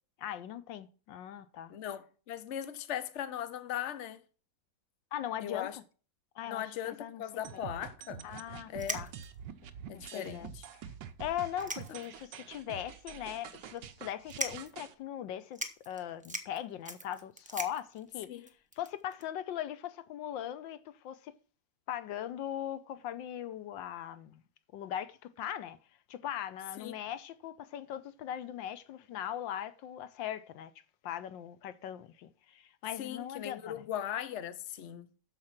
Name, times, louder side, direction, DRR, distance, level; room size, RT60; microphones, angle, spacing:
voice 1, 0.2-1.7 5.1-5.7 6.3-7.2 7.5-7.6 8.2-9.1 9.9-10.5 11.2-21.3 21.9-24.4 24.7-25.8 26.1-30.7 31.0-33.8, left 11 dB, 85° left, 1.5 m, -40 dB
voice 2, 1.7-4.2 5.4-5.8 6.5-8.2 8.7-9.0 9.9-10.5 18.3-18.4 26.8-26.9 33.0-35.1, left 10 dB, 50° left, 1.0 m, -39 dB
sound 1, 7.4-14.9, right 8 dB, 75° right, 1.5 m, -46 dB
sound 2, 8.3-8.4 8.8-9.5 10.1-10.2 10.5-10.6 11.4-12.3 12.7-12.8 13.5-13.8 14.3-14.8 15.2-15.3 15.5-19.2, right 1 dB, 5° right, 0.6 m, -41 dB
13.0 x 5.1 x 5.8 m
omnidirectional pair, 2.0 m